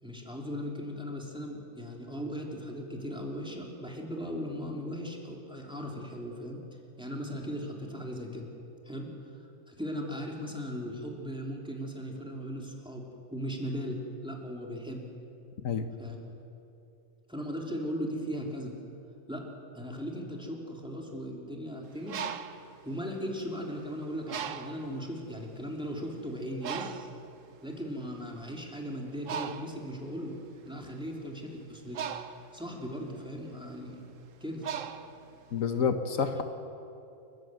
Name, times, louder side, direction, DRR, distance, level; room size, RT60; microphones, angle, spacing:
voice 1, 0.0-6.6 7.0-8.5 8.8-9.1 9.7-15.1 16.0-16.2 17.3-18.7 19.3-19.5 19.7-22.2 22.8-27.1 27.6-32.0 32.5-34.0 34.4-34.6, equal, 5° right, -1 dB, 3.2 m, -38 dB
Bird, 21.9-23.7 24.3-25.0 25.6-25.8 26.0-35.8, right 8 dB, 70° right, 1.3 m, -40 dB
voice 2, 35.5-36.4, left 6 dB, 75° left, 7 dB, 1.5 m, -28 dB
29.0 x 15.0 x 7.8 m, 2.8 s
omnidirectional pair, 1.4 m